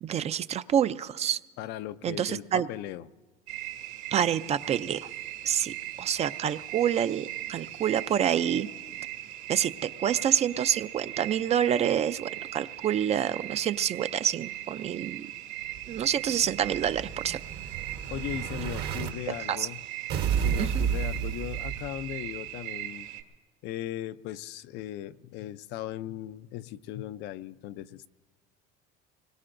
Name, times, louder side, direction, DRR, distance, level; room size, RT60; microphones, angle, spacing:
voice 1, 0.0-1.4 2.0-2.7 4.1-5.1 5.4-8.7 9.5-15.3 15.9-17.4 19.5-19.7 20.6-20.8, right 9 dB, 35° right, 13 dB, 0.4 m, -27 dB
voice 2, 1.6-3.1 18.1-19.8 20.4-23.1 23.6-28.1, left 13 dB, 60° left, 13 dB, 0.5 m, -38 dB
sound 1, 3.5-23.2, right 14 dB, 80° right, 2.1 m, -39 dB
Explosion, 15.7-19.1 20.1-22.1, right 8 dB, 55° right, 1.1 m, -31 dB
25.5 x 21.5 x 2.6 m, 1.3 s
cardioid pair, 125°, 20 cm